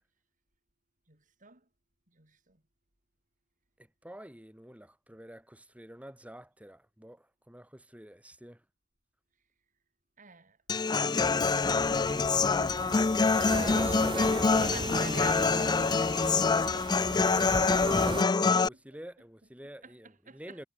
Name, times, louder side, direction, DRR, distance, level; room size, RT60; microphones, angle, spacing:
voice 1, 1.1-1.7 2.1-2.6 10.2-13.1 13.7-17.8 19.8-20.6, right 5 dB, 45° right, 5.4 m, -49 dB
voice 2, 3.8-8.6 10.7-11.2 13.4-14.7 18.1-20.7, equal, 5° right, 6.4 m, -48 dB
Human voice / Acoustic guitar, 10.7-18.7, left 4 dB, 20° left, 0.4 m, -26 dB
sound 1, 11.2-18.2, right 2 dB, 25° right, 1.8 m, -37 dB
head